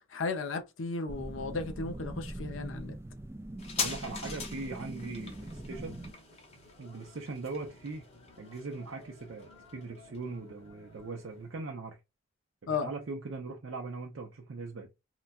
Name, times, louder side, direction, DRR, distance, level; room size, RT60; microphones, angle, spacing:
voice 1, 0.1-3.0 12.7-12.9, left 4 dB, 65° left, 0.6 m, -35 dB
sound 1, 1.1-6.1, right 1 dB, 10° right, 0.3 m, -42 dB
sound 2, 3.6-10.7 11.0-11.1, left 4 dB, 30° left, 0.7 m, -42 dB
voice 2, 3.8-6.0 6.8-8.1 8.4-12.0 12.6-14.9, right 3 dB, 65° right, 0.5 m, -40 dB
sound 3, 5.3-11.5, left 1 dB, 85° left, 2.0 m, -57 dB
3.8 x 2.2 x 2.3 m
head